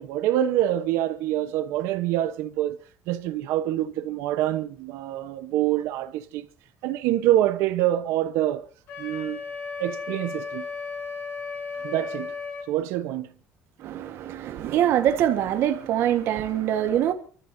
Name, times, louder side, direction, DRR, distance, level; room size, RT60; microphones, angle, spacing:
voice 1, 0.0-2.8 3.1-6.5 6.8-8.7 9.0-9.4 9.8-10.6 11.8-12.4 12.7-13.3, right 13 dB, 90° right, 1.0 m, -25 dB
Wind instrument woodwind instrument, 8.9-12.7, left 4 dB, 60° left, 6.8 m, -35 dB
voice 2, 13.8-17.1, right 11 dB, 60° right, 1.5 m, -24 dB
28.5 x 14.5 x 2.8 m
cardioid pair, 150°, 5 cm